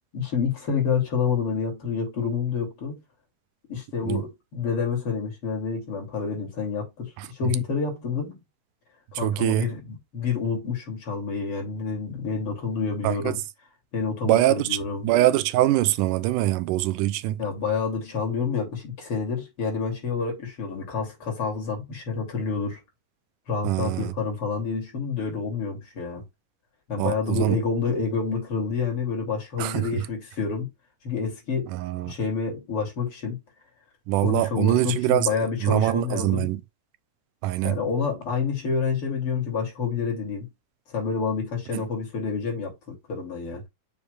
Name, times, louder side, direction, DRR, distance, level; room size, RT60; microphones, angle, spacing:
voice 1, 0.1-3.0 3.7-8.4 9.2-13.4 13.9-15.1 17.4-22.8 23.5-26.2 26.9-30.7 31.0-31.7 32.0-33.4 34.2-36.5 37.6-40.5 40.9-43.6, left 5 dB, 45° left, 3.9 m, -28 dB
voice 2, 7.2-7.5 9.2-9.7 13.0-13.3 14.2-17.4 23.6-24.1 27.0-27.6 29.6-30.1 31.7-32.1 34.1-35.3 35.6-36.6 37.4-37.8 41.7-41.8, right 14 dB, 85° right, 2.2 m, -23 dB
6.9 x 6.8 x 2.5 m
omnidirectional pair, 3.7 m